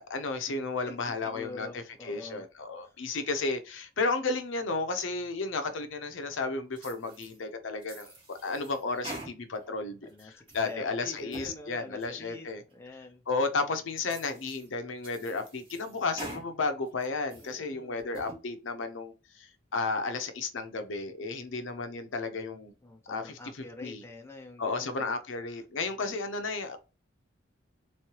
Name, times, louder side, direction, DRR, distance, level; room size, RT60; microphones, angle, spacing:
voice 1, 0.0-1.7 2.0-12.6 13.3-22.7 23.1-23.4 23.8-24.0 24.6-26.8, left 3 dB, 75° left, 0.6 m, -33 dB
voice 2, 0.8-2.4 2.8-3.0 10.0-13.2 17.4-18.0 22.8-25.1, left 2 dB, 15° left, 0.6 m, -46 dB
sound 1, 6.8-7.4 7.8-9.7 10.1-10.7 11.2-11.6 12.0-12.1 12.7-12.8 13.4-13.5 14.0-14.7 15.0-16.5 16.9-17.5 18.0-18.4, right 2 dB, 30° right, 1.4 m, -45 dB
3.6 x 3.2 x 2.9 m
head